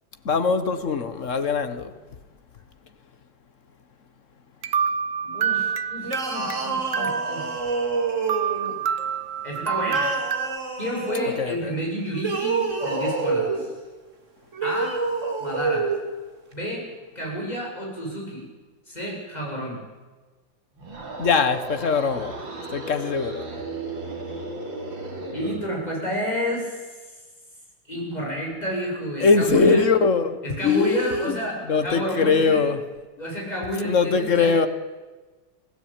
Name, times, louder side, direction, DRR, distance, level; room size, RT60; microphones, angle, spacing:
voice 1, 0.2-1.9 11.4-11.7 21.2-22.4 22.7-23.5 29.2-31.4 31.7-32.8 33.8-34.7, left 5 dB, 45° left, 1.5 m, -21 dB
sound 1, 4.6-6.6 6.9-8.0 8.3-10.6, right 7 dB, 55° right, 1.0 m, -27 dB
voice 2, 5.2-7.6 9.4-10.2 10.8-13.7 14.6-15.0 15.4-15.9 16.5-16.8 17.1-18.5 18.9-19.8 25.3-27.2 27.9-29.9 30.4-32.7 33.2-34.6, equal, 20° left, 7.7 m, -30 dB
sound 2, 6.0-8.8 9.8-11.3 12.1-13.7 14.5-16.0, right 4 dB, 40° right, 2.9 m, -27 dB
sound 3, 20.7-25.7, right 2 dB, 70° right, 4.0 m, -35 dB
25.5 x 17.0 x 8.9 m
omnidirectional pair, 2.1 m